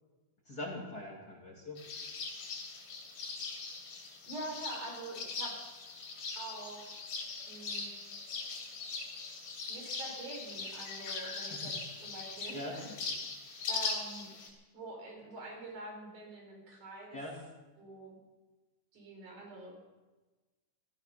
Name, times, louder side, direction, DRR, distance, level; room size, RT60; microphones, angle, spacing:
voice 1, 0.5-1.8 11.4-11.7 12.5-13.0 17.1-17.4, left 1 dB, 30° left, -2 dB, 2.6 m, -42 dB
sound 1, 1.8-14.5, left 4 dB, 75° left, 4.5 m, -41 dB
voice 2, 4.3-5.6 6.4-7.0 7.5-7.9 9.7-11.7 12.0-13.3 13.7-14.3 14.7-17.2 17.8-18.2 18.9-19.8, right 2 dB, 70° right, 0 dB, 5.9 m, -45 dB
16.0 x 14.5 x 5.8 m, 1.2 s
omnidirectional pair, 3.8 m